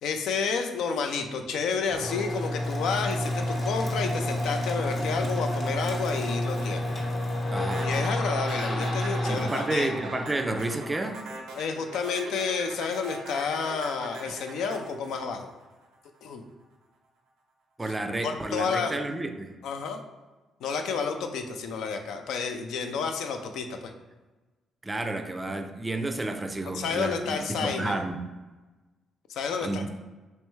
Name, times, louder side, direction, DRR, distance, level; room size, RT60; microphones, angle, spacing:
voice 1, 0.0-6.9 7.8-9.9 11.5-15.5 16.2-16.4 18.2-18.9 19.6-20.0 20.6-23.9 26.6-28.0 29.3-29.9, left 5 dB, 80° left, 5 dB, 0.4 m, -30 dB
sound 1, 1.9-11.4, left 1 dB, 50° left, 0.9 m, -30 dB
voice 2, 7.5-7.9 9.2-11.2 17.8-19.5 24.8-28.2 29.6-29.9, right 2 dB, 20° right, 6 dB, 0.4 m, -31 dB
sound 2, 7.7-16.1, right 3 dB, 90° right, 0.6 m, -41 dB
3.3 x 3.1 x 3.1 m, 1.2 s
cardioid pair, 90°, 0 cm